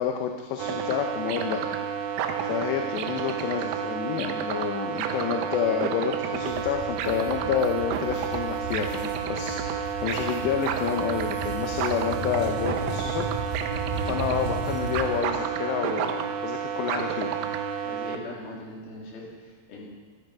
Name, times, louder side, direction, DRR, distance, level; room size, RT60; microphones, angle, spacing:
voice 1, 0.0-13.2 13.8-17.4, left 8 dB, 80° left, 4 dB, 2.8 m, -29 dB
sound 1, 0.6-18.2, right 8 dB, 80° right, 2.3 m, -30 dB
sound 2, 6.3-15.2, right 2 dB, 45° right, 2.7 m, -35 dB
voice 2, 17.8-19.9, left 2 dB, 65° left, -4 dB, 4.3 m, -40 dB
12.5 x 10.0 x 4.7 m, 1.4 s
omnidirectional pair, 5.0 m